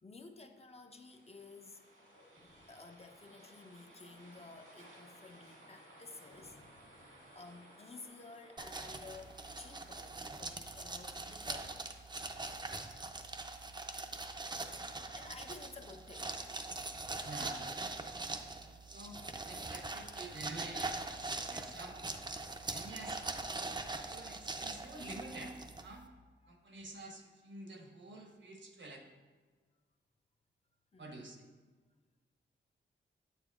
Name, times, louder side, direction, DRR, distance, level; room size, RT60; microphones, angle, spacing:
voice 1, 0.0-1.9 2.3-11.7 15.1-16.4 19.1-19.2 20.4-20.5 22.8-23.1 26.4-26.5 30.9-31.1, left 3 dB, 30° left, 5 dB, 0.6 m, -53 dB
sound 1, 0.8-10.0, right 1 dB, 90° right, 1.8 m, -59 dB
sound 2, 8.6-26.1, right 2 dB, 20° right, 0.5 m, -42 dB
voice 2, 17.2-17.6 18.5-19.2 19.5-22.1 22.7-23.5 24.1-26.1 26.5-29.0 31.0-31.4, right 2 dB, 65° right, 3 dB, 0.9 m, -49 dB
8.2 x 6.9 x 2.4 m, 1.4 s
wide cardioid pair, 80°, 20 cm